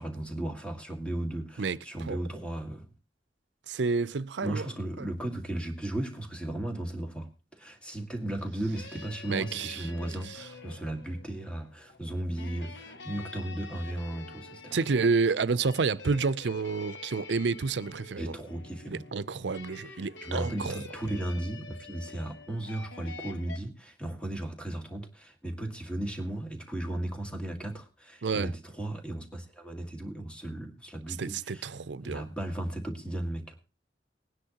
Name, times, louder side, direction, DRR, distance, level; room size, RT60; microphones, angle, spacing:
voice 1, 0.0-2.9 4.4-15.0 18.2-19.0 19.9-31.7 32.0-33.6, right 1 dB, 5° left, 2.0 m, -36 dB
voice 2, 3.7-4.6 5.0-5.1 9.3-9.8 14.7-18.4 18.9-20.8 28.2-28.5 31.2-32.2, right 4 dB, 85° right, 0.6 m, -29 dB
sound 1, 8.7-23.6, left 4 dB, 85° left, 1.1 m, -47 dB
20.0 x 10.0 x 2.9 m
head